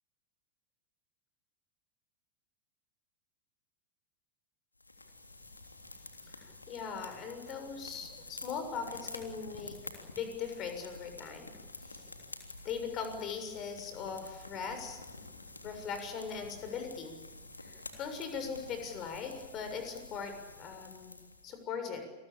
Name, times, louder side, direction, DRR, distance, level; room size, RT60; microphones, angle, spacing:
sound 1, 4.8-21.6, left 2 dB, 80° left, 3.3 m, -49 dB
voice 1, 6.4-11.5 11.9-12.0 12.6-15.0 15.6-17.2 17.6-21.2 21.4-22.1, left 6 dB, 35° left, 7 dB, 6.8 m, -40 dB
28.5 x 21.5 x 8.8 m, 1.1 s
figure-of-eight pair, 90°, 0 cm